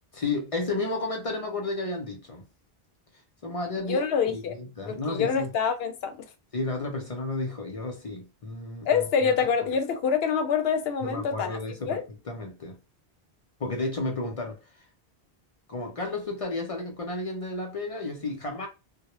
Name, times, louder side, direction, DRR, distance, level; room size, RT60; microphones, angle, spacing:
voice 1, 0.1-2.5 3.4-4.0 4.3-5.5 6.5-9.3 11.0-12.0 12.3-12.8 13.6-14.8 15.7-18.7, left 2 dB, 45° left, 0.5 m, -32 dB
voice 2, 3.8-4.6 4.9-6.3 8.8-11.6 11.8-12.0, left 6 dB, 75° left, 0.8 m, -26 dB
2.1 x 2.1 x 2.9 m
omnidirectional pair, 1.0 m